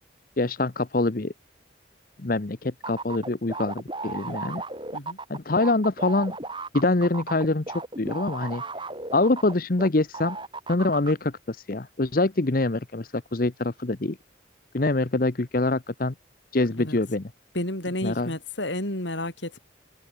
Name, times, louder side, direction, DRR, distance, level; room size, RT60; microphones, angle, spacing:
voice 1, 0.4-1.3 2.2-4.6 5.3-6.4 6.7-8.6 9.1-10.4 10.7-14.2 14.7-16.1 16.5-17.3 18.0-18.3, left 2 dB, 45° left, 0.9 m, -25 dB
sound 1, 2.8-9.9 10.1-11.1, right 3 dB, 25° right, 7.6 m, -35 dB
voice 2, 4.2-4.5 4.9-5.2 16.8-17.0 17.5-19.6, left 1 dB, 70° left, 8.0 m, -31 dB
open air
head